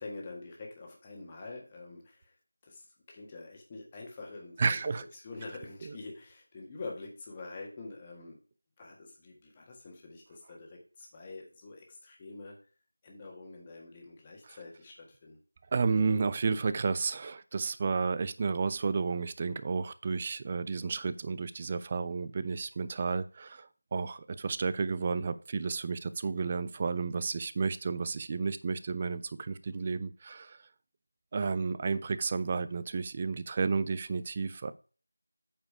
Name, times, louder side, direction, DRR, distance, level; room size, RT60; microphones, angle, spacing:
voice 1, 0.0-2.3 2.6-2.9 3.1-4.8 5.1-8.4 8.8-12.5 13.0-15.4, left 3 dB, 15° left, 0 dB, 1.6 m, -46 dB
voice 2, 4.6-5.1 5.8-6.0 14.5-14.6 15.7-30.6 31.3-34.7, right 4 dB, 20° right, 14 dB, 0.4 m, -32 dB
8.6 x 4.9 x 4.8 m, 0.38 s
figure-of-eight pair, 170°, 0 cm